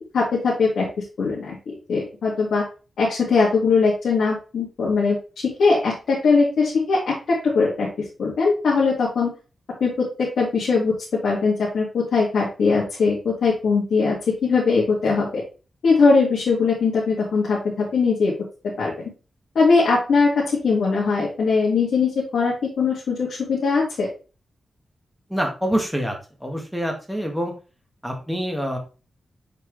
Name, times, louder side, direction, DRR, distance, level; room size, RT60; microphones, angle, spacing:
voice 1, 0.1-0.9 1.2-2.6 3.0-5.2 5.6-7.9 8.2-9.3 9.8-10.9 11.2-15.4 15.8-18.3 18.8-18.9 19.6-24.1, left 4 dB, 85° left, -5 dB, 2.0 m, -20 dB
voice 2, 25.3-26.1 26.4-27.5 28.0-28.8, equal, ahead, 2 dB, 1.7 m, -25 dB
6.7 x 4.7 x 3.2 m, 0.33 s
wide cardioid pair, 105°, 0 cm